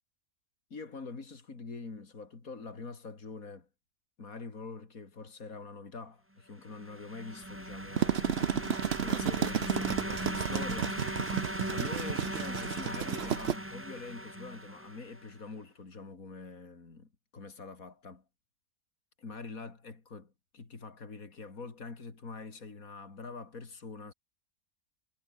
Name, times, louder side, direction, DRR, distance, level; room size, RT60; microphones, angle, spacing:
voice 1, 0.7-3.7 4.2-11.4 11.7-18.2 19.2-24.1, left 4 dB, 65° left, 3.6 m, -45 dB
sound 1, 6.6-15.3, right 1 dB, 10° right, 3.1 m, -38 dB
sound 2, 7.7-13.6, right 9 dB, 50° right, 1.0 m, -32 dB
omnidirectional pair, 1.6 m